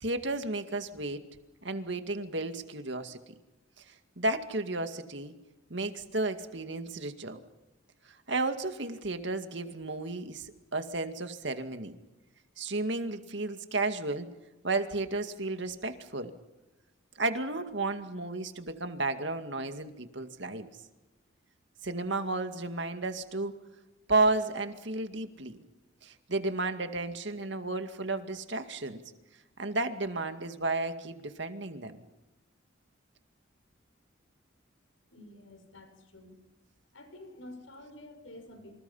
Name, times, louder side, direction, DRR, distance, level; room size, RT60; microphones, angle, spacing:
voice 1, 0.0-1.2 1.6-3.2 4.2-5.3 5.7-7.4 8.3-11.9 12.6-14.3 14.6-16.3 17.2-20.7 21.8-23.5 24.1-25.6 26.0-29.0 29.6-32.0, right 2 dB, 60° right, 8 dB, 2.2 m, -32 dB
voice 2, 35.1-36.4 36.9-38.8, left 1 dB, 75° left, 7 dB, 6.1 m, -49 dB
28.0 x 26.5 x 5.7 m, 1.0 s
head